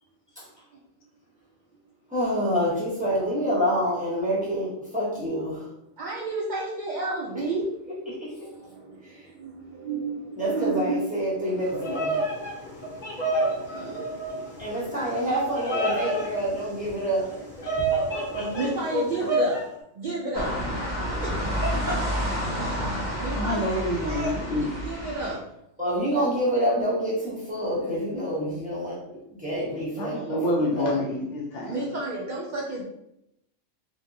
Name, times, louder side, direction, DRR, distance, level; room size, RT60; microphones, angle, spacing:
voice 1, 2.1-5.6 10.4-12.1 14.6-17.3 25.8-29.0 29.4-30.2 30.6-30.9, equal, 10° right, -8 dB, 0.7 m, -27 dB
voice 2, 6.0-7.7 8.3-12.6 12.9-14.8 15.1-15.2 16.9-17.1 17.6-19.6 20.0-20.5 21.2-21.9 22.7-25.4 31.7-32.8, right 2 dB, 80° right, -3 dB, 0.4 m, -33 dB
Bird vocalization bird call bird song, 11.6-19.6, right 1 dB, 40° left, 0.9 m, -29 dB
sound 1, 20.3-25.3, equal, 40° right, 0.9 m, -29 dB
voice 3, 23.3-24.7 29.7-31.9, left 1 dB, 70° left, -1 dB, 0.9 m, -28 dB
2.7 x 2.2 x 2.5 m, 0.80 s
omnidirectional pair, 1.3 m